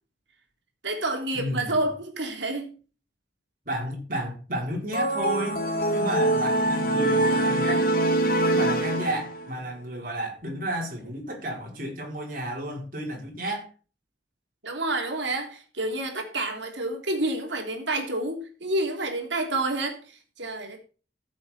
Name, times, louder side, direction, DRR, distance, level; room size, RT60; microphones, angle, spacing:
voice 1, 0.8-2.7 14.6-20.8, right 2 dB, 90° right, 3.2 m, -29 dB
voice 2, 1.3-1.8 3.7-5.6 5.9-7.9 8.4-13.7, right 1 dB, 50° right, 4.5 m, -32 dB
sound 1, 4.9-9.6, right 1 dB, 50° left, 2.0 m, -24 dB
14.5 x 7.6 x 4.3 m
head